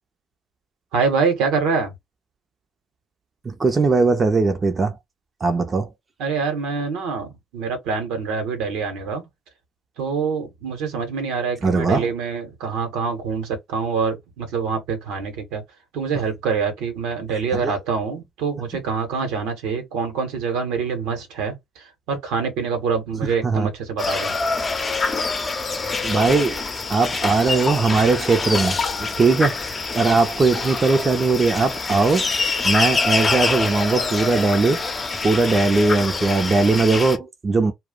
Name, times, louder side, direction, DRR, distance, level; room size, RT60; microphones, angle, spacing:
voice 1, 0.9-1.9 6.2-9.3 10.0-15.6 15.9-24.4, right 5 dB, 75° right, 0.9 m, -25 dB
voice 2, 3.4-5.0 5.4-5.9 11.6-12.1 17.6-17.7 23.4-23.7 26.0-26.6 26.9-32.3 32.6-34.8 35.2-37.7, right 3 dB, 35° right, 0.6 m, -19 dB
sound 1, 24.0-37.2, left 4 dB, 35° left, 0.7 m, -25 dB
2.4 x 2.0 x 3.6 m
hypercardioid pair, 50°, 0 cm